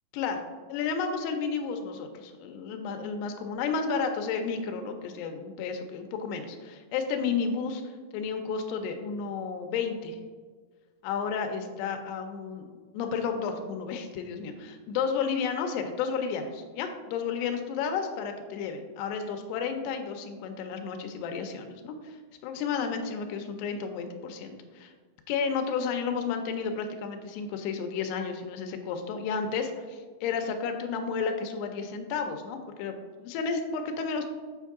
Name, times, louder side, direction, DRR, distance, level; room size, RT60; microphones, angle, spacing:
voice 1, 0.7-7.8 8.1-10.2 11.0-12.7 12.9-22.2 22.4-24.9 25.3-34.3, left 5 dB, 85° left, 5 dB, 2.7 m, -32 dB
7.8 x 4.6 x 3.5 m, 1.5 s
omnidirectional pair, 4.7 m